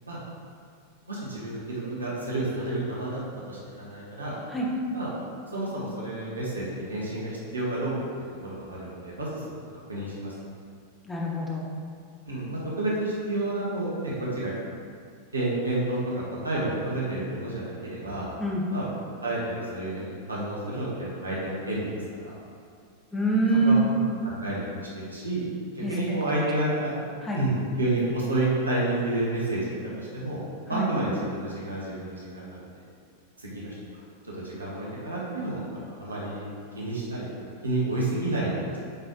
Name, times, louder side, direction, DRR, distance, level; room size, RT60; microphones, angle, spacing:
voice 1, 1.1-3.2 3.5-4.3 4.9-5.1 5.5-7.9 8.4-9.4 9.9-10.3 12.3-14.5 15.3-18.2 18.7-18.9 19.2-21.9 22.2-22.3 23.6-23.8 24.2-25.4 25.7-26.9 27.4-29.6 30.0-30.4 30.7-32.7 33.4-33.7 34.2-36.5 36.7-37.2 37.6-38.8, right 2 dB, 80° right, -6 dB, 1.5 m, -30 dB
voice 2, 11.0-11.6 18.4-18.6 23.1-23.9 25.8-26.0 27.2-27.4 30.7-30.9, right 2 dB, 10° left, -3 dB, 1.2 m, -25 dB
8.5 x 4.5 x 2.9 m, 2.2 s
figure-of-eight pair, 90°, 0 cm